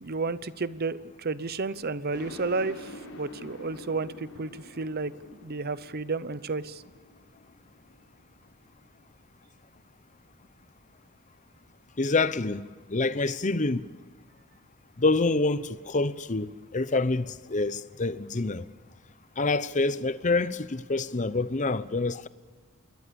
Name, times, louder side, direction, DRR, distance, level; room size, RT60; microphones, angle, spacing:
voice 1, 0.0-2.9 3.2-4.5 4.8-5.1 5.4-6.8, right 3 dB, 45° right, 0.8 m, -31 dB
sound 1, 2.1-8.8, left 2 dB, 75° left, 4.1 m, -46 dB
voice 2, 12.0-12.6 12.9-13.9 15.0-18.7 19.4-22.3, left 3 dB, 35° left, 0.8 m, -27 dB
27.5 x 22.0 x 7.0 m
head